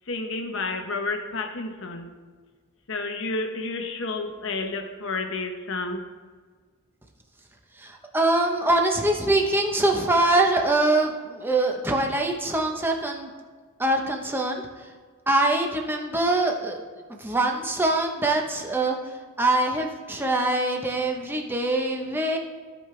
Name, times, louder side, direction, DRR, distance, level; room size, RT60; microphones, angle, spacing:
voice 1, 0.1-2.1 2.9-6.1, left 3 dB, 60° left, 5 dB, 0.9 m, -30 dB
voice 2, 7.8-13.3 13.8-14.9 15.3-16.8 17.2-19.0 19.4-22.4, right 2 dB, 10° right, 1 dB, 0.8 m, -23 dB
15.5 x 5.3 x 3.3 m, 1.5 s
head